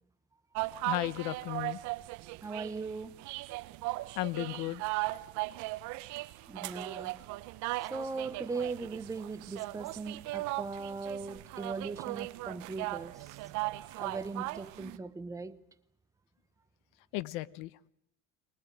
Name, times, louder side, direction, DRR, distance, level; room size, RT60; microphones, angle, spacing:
sound 1, 0.5-15.0, right 20 dB, 60° right, 1.0 m, -38 dB
voice 1, 0.9-1.8 4.2-4.8 17.1-17.7, left 17 dB, 75° left, 0.9 m, -34 dB
voice 2, 2.4-3.3 6.5-7.3 7.8-13.2 13.9-15.6, right 4 dB, 10° right, 0.9 m, -39 dB
23.0 x 19.5 x 9.1 m
cardioid pair, 145°, 32 cm